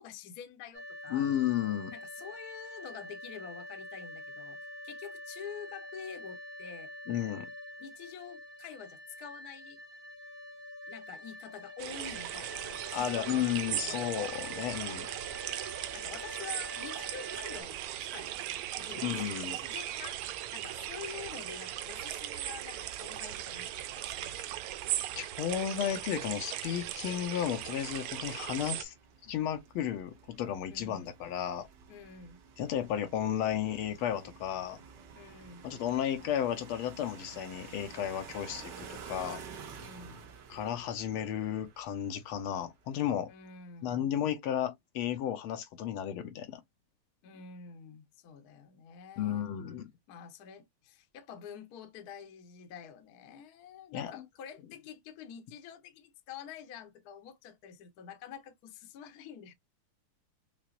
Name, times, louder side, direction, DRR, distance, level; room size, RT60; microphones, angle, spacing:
voice 1, 0.0-1.3 1.9-6.9 7.8-9.8 10.9-14.1 15.9-20.2 20.5-24.4 30.7-31.1 31.9-32.4 35.1-35.7 39.8-40.2 43.3-44.1 47.2-49.5 50.1-59.5, left 7 dB, 60° left, 1.1 m, -48 dB
sound 1, 0.7-17.6, left 1 dB, 40° right, 0.9 m, -46 dB
voice 2, 1.1-1.9 7.1-7.5 12.9-15.1 19.0-19.6 25.2-28.9 29.2-31.7 32.6-34.8 35.6-39.4 40.5-43.3 43.8-46.6 49.2-49.9 53.9-54.2, left 10 dB, 80° left, 1.5 m, -33 dB
sound 2, 11.8-28.8, right 13 dB, 85° right, 1.5 m, -38 dB
sound 3, 26.8-43.0, right 6 dB, 65° right, 1.3 m, -51 dB
5.9 x 2.0 x 2.4 m
omnidirectional pair, 2.4 m